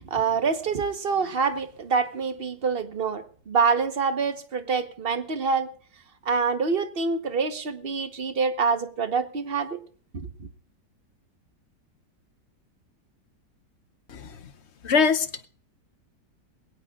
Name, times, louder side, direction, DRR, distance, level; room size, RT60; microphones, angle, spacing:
voice 1, 0.0-5.7 6.2-9.8 10.1-10.5, right 5 dB, 35° right, 1.1 m, -26 dB
voice 2, 14.8-15.5, left 5 dB, 55° left, 0.8 m, -21 dB
21.5 x 17.5 x 2.4 m
omnidirectional pair, 1.9 m